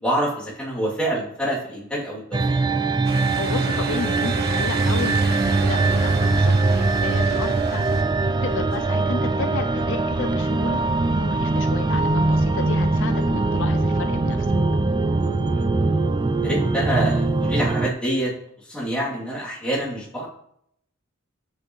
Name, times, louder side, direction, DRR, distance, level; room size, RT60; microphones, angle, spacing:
voice 1, 0.0-2.6 15.4-15.7 16.4-18.3 18.7-20.3, right 1 dB, 5° left, -8 dB, 2.9 m, -26 dB
sound 1, 2.3-17.9, right 3 dB, 20° right, 0.3 m, -22 dB
sound 2, 3.0-8.0, right 3 dB, 50° right, 1.0 m, -33 dB
voice 2, 3.4-7.9 8.4-10.8 11.2-14.5, left 4 dB, 60° left, 8 dB, 0.6 m, -32 dB
9.7 x 8.0 x 3.2 m, 0.73 s
head